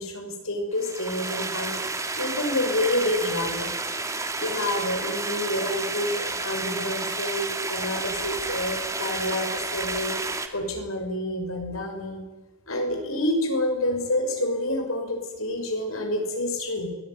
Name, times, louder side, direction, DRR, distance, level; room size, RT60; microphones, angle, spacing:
voice 1, 0.0-1.8 2.2-3.7 4.4-10.2 10.5-12.2 12.7-16.9, left 1 dB, 85° left, 4 dB, 5.9 m, -28 dB
sound 1, 0.8-10.5, right 3 dB, 15° right, 2.2 m, -31 dB
24.0 x 18.5 x 9.5 m, 1.2 s
head